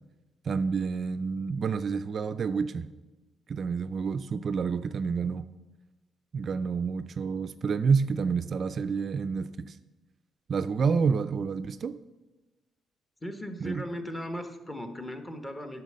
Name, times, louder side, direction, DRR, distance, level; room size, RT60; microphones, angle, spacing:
voice 1, 0.4-2.9 3.5-5.4 6.3-9.8 10.5-12.0 13.6-13.8, right 5 dB, 50° right, 12 dB, 0.3 m, -29 dB
voice 2, 13.2-15.8, equal, 15° left, 7 dB, 1.2 m, -37 dB
9.1 x 5.8 x 6.4 m, 1.1 s
cardioid pair, 90°, 0 cm